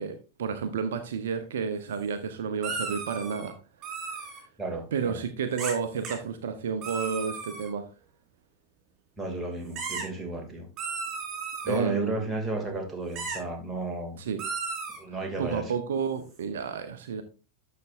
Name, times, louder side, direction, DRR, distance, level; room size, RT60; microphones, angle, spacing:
voice 1, 0.0-3.5 4.1-4.4 4.9-7.9 11.7-12.3 14.2-14.4 15.1-17.2, right 6 dB, 60° right, 9 dB, 0.8 m, -31 dB
sound 1, 2.6-3.5 3.8-4.4 5.6-5.8 6.0-6.2 6.8-7.7 9.8-10.0 10.8-11.8 13.2-13.4 14.4-15.0, right 5 dB, 35° right, 5.1 m, -35 dB
voice 2, 4.6-5.2 9.2-10.7 11.6-14.2 15.0-15.7, right 2 dB, 10° right, 1 dB, 2.5 m, -33 dB
12.0 x 6.8 x 2.6 m, 0.33 s
figure-of-eight pair, 90°, 0 cm